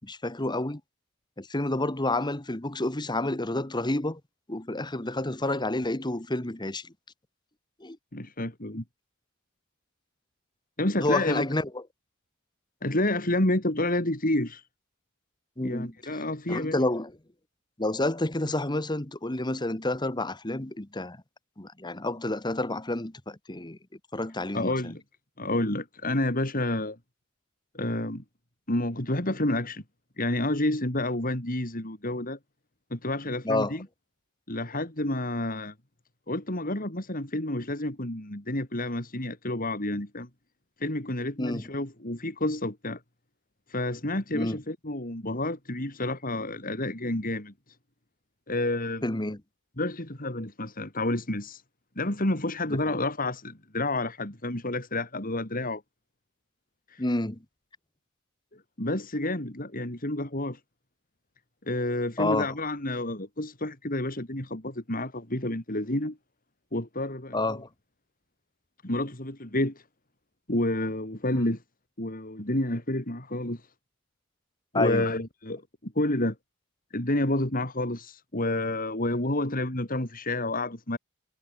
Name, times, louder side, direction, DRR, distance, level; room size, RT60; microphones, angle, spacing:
voice 1, 0.0-0.8 1.4-4.2 4.5-6.9 7.8-8.0 11.0-11.8 15.6-15.9 16.5-17.1 17.8-21.2 21.6-23.8 24.1-24.9 33.4-33.8 41.4-41.6 44.3-44.6 49.0-49.4 52.9-53.0 57.0-57.4 62.2-62.5 67.3-67.7 74.7-75.1, left 2 dB, 20° left, 1.5 m, -29 dB
voice 2, 8.1-8.8 10.8-11.5 12.8-14.6 15.6-16.8 24.5-25.0 25.4-27.0 27.7-28.2 28.7-29.8 30.2-32.4 32.9-33.9 34.5-35.7 36.3-40.3 40.8-43.0 43.7-47.5 48.5-49.1 49.8-51.6 52.0-55.8 56.9-57.0 58.5-60.6 61.7-66.2 66.7-67.6 68.8-69.8 70.5-71.6 72.0-73.6 74.7-76.4 76.9-81.0, left 1 dB, 40° left, 4.3 m, -29 dB
head